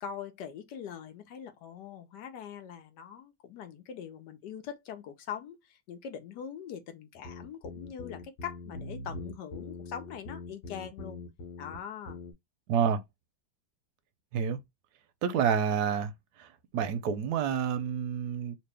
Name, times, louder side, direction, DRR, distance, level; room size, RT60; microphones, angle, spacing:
voice 1, 0.0-11.2 11.6-12.2, left 8 dB, 65° left, 1.2 m, -42 dB
sound 1, 7.2-11.8 12.1-12.3, left 2 dB, 85° left, 1.6 m, -43 dB
voice 2, 12.7-13.0 14.3-14.6 15.2-16.1 16.4-16.5 16.7-18.6, right 7 dB, 70° right, 1.0 m, -28 dB
2.9 x 2.9 x 3.3 m
omnidirectional pair, 2.1 m